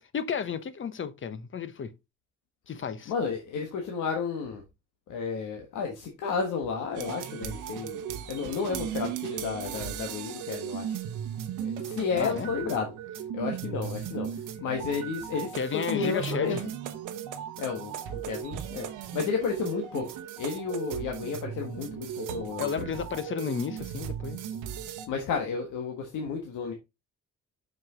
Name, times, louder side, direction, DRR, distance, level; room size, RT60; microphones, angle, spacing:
voice 1, 0.1-1.9 2.7-3.1 12.2-12.5 15.5-16.6 22.6-24.4, left 7 dB, 40° left, 0.9 m, -32 dB
voice 2, 3.1-4.6 5.1-8.0 8.3-10.9 11.6-12.9 13.3-14.3 14.6-16.6 17.6-18.9 19.1-20.1 20.4-22.9 25.1-26.7, left 5 dB, 85° left, 1.4 m, -32 dB
sound 1, 6.9-25.1, right 9 dB, 90° right, 1.0 m, -37 dB
6.0 x 5.2 x 3.7 m
cardioid pair, 90°, 30 cm